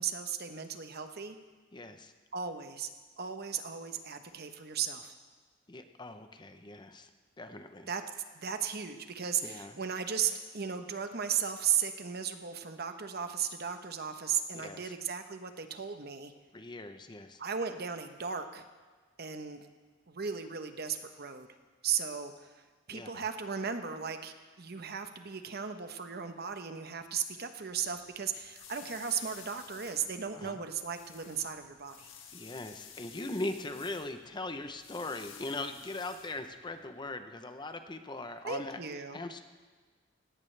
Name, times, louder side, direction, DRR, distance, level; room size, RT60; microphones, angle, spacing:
voice 1, 0.0-1.4 2.3-2.9 3.2-5.1 7.9-8.0 8.3-16.3 17.4-18.6 19.2-19.7 20.1-21.5 21.8-32.1 38.4-39.2, right 7 dB, 55° right, 7 dB, 1.0 m, -36 dB
voice 2, 1.7-2.1 5.7-7.1 7.4-7.9 9.4-9.7 14.5-14.9 16.5-17.4 22.9-23.2 30.3-30.6 32.3-38.8 39.1-39.4, left 2 dB, 25° left, 8 dB, 0.7 m, -40 dB
sound 1, 27.7-36.9, left 8 dB, 80° left, 1.5 m, -53 dB
17.5 x 17.0 x 3.3 m, 1.4 s
head